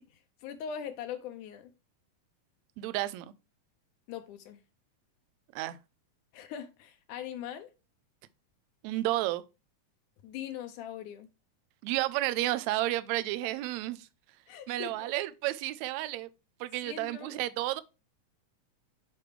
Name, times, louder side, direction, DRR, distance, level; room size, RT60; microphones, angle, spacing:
voice 1, 0.0-1.7 4.1-4.6 6.3-7.7 10.2-11.3 14.5-15.1 16.8-17.4, left 9 dB, 80° left, 2.1 m, -41 dB
voice 2, 2.8-3.3 5.5-5.8 8.8-9.4 11.8-14.1 14.7-16.3 16.6-17.8, right 16 dB, 80° right, 1.7 m, -31 dB
8.6 x 4.9 x 3.1 m
omnidirectional pair, 3.6 m